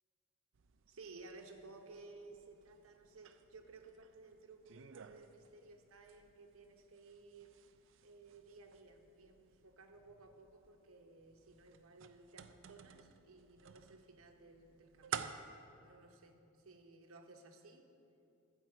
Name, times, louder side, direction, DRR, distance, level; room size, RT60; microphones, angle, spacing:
sound 1, 0.5-15.5, right 7 dB, 65° right, 0.4 m, -53 dB
voice 1, 0.9-7.6 8.0-17.9, right 3 dB, 90° right, 4 dB, 1.0 m, -57 dB
13.0 x 4.7 x 7.6 m, 2.7 s
head